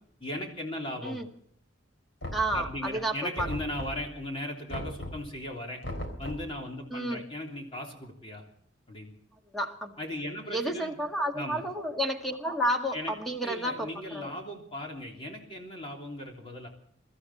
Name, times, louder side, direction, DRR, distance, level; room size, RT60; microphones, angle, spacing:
voice 1, 0.2-1.2 2.5-5.8 6.2-8.4 8.9-9.1 10.0-10.9 11.3-11.7 12.9-13.1 13.4-16.7, left 1 dB, 30° left, 0 dB, 3.3 m, -37 dB
Knock, 2.2-2.9 3.4-4.1 4.7-5.3 5.8-6.6, left 1 dB, 90° left, 3.7 m, -37 dB
voice 2, 2.3-3.5 6.9-7.2 9.5-9.9 10.5-13.9 14.1-14.3, right 1 dB, ahead, 2 dB, 1.8 m, -31 dB
23.5 x 13.5 x 4.3 m, 0.66 s
head